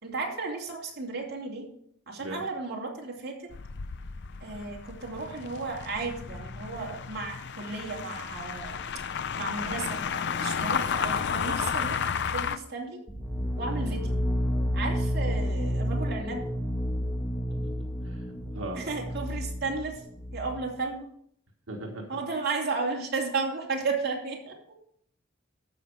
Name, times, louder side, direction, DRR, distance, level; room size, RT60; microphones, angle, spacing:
voice 1, 0.0-1.6 2.1-3.5 4.4-8.8 9.4-13.0 13.6-14.2 14.7-16.4 18.7-20.0 20.3-21.1 22.1-24.5, right 3 dB, 50° right, -1 dB, 2.8 m, -34 dB
sound 1, 3.5-12.6, left 6 dB, 55° left, 0.6 m, -32 dB
sound 2, 13.1-20.7, equal, ahead, 1.4 m, -30 dB
voice 2, 17.5-18.3 18.5-18.8 21.7-22.0, right 1 dB, 90° right, 1 dB, 1.6 m, -39 dB
14.0 x 5.9 x 4.9 m, 0.67 s
head